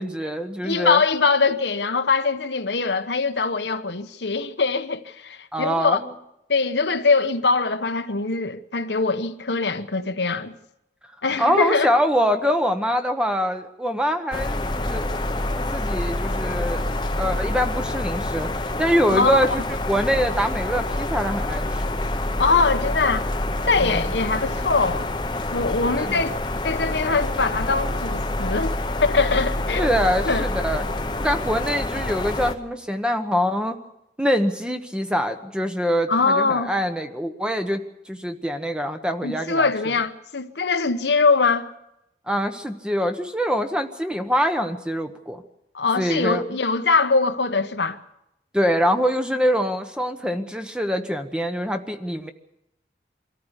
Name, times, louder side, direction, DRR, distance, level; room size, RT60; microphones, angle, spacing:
voice 1, 0.0-1.0 5.5-6.1 11.4-15.1 15.6-16.9 17.2-18.5 18.8-22.0 23.8-24.1 26.0-26.2 29.8-30.9 31.2-33.8 34.2-37.8 38.1-39.7 42.3-45.4 46.0-46.4 48.5-52.3, equal, 5° right, 1.1 m, -24 dB
voice 2, 0.6-6.0 6.5-10.5 11.2-12.0 19.1-19.4 22.4-23.3 23.7-25.1 25.5-26.4 26.6-28.7 29.0-29.9 30.2-30.5 36.1-36.7 39.2-41.7 45.7-48.0, left 4 dB, 85° left, 1.1 m, -22 dB
sound 1, 14.3-32.5, left 1 dB, 25° left, 0.9 m, -27 dB
24.0 x 14.0 x 8.2 m
head